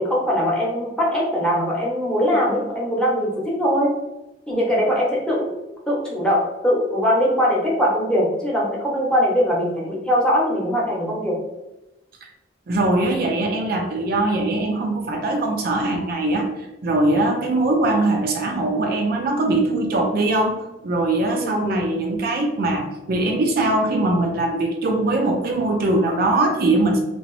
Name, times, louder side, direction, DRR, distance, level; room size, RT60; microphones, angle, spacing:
voice 1, 0.0-3.9 4.5-5.6 5.9-11.4 21.4-21.9, equal, 5° left, -5 dB, 0.9 m, -21 dB
voice 2, 12.7-16.5 16.8-27.0, right 2 dB, 55° right, 2 dB, 0.5 m, -21 dB
3.0 x 2.9 x 3.1 m, 0.99 s
head